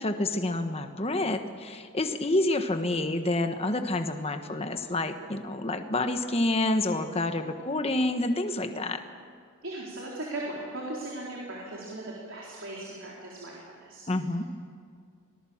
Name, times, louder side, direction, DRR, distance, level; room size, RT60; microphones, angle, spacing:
voice 1, 0.0-9.0 14.1-14.5, left 2 dB, 30° left, 7 dB, 1.2 m, -28 dB
voice 2, 9.6-14.0, right 2 dB, 60° right, -4 dB, 4.1 m, -38 dB
25.0 x 19.0 x 7.3 m, 2.1 s
head